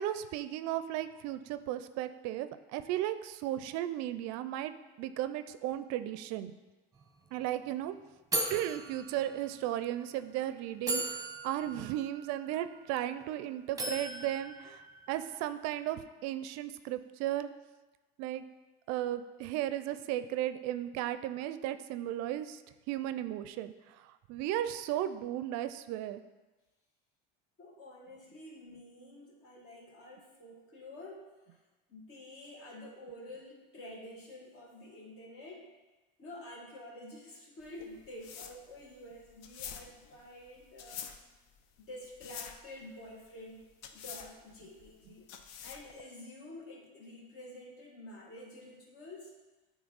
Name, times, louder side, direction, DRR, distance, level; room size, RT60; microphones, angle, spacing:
voice 1, 0.0-6.6 7.3-7.9 8.5-11.2 11.4-14.8 15.1-17.5 18.2-18.4 18.9-22.6 22.9-26.2, right 12 dB, 65° right, 11 dB, 0.4 m, -35 dB
sound 1, 7.0-7.1 7.3-7.6 8.3-9.7 10.4-10.5 10.9-13.3 13.8-15.4, right 2 dB, 10° right, 0.9 m, -38 dB
voice 2, 27.6-31.6 31.9-35.7 36.2-41.1 41.8-43.7 43.9-45.3 45.6-49.3, left 1 dB, 50° left, -2 dB, 1.9 m, -49 dB
sound 2, 37.6-46.0, left 8 dB, 65° left, 0.6 m, -47 dB
8.8 x 3.1 x 4.0 m, 1.1 s
supercardioid pair, 90°, 30 cm